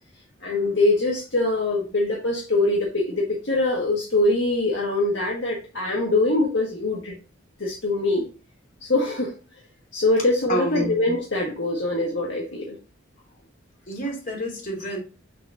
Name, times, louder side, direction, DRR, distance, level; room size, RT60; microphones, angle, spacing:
voice 1, 0.4-7.2 7.6-8.3 8.8-9.3 9.9-12.7, left 2 dB, 65° left, -2 dB, 1.7 m, -23 dB
voice 2, 10.5-10.9 13.9-15.0, equal, 45° left, 0 dB, 3.2 m, -28 dB
6.6 x 6.5 x 2.6 m, 0.33 s
head